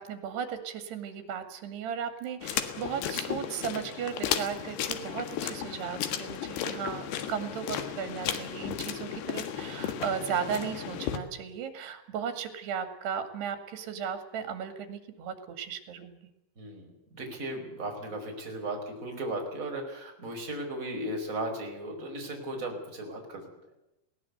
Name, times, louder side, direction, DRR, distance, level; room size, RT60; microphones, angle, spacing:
voice 1, 0.0-16.2, right 7 dB, 85° right, 9 dB, 4.3 m, -36 dB
sound 1, 2.4-11.2, left 9 dB, 85° left, 3.7 m, -34 dB
voice 2, 16.6-23.5, right 1 dB, 20° right, 2 dB, 5.1 m, -36 dB
21.0 x 18.5 x 8.1 m, 0.85 s
omnidirectional pair, 4.6 m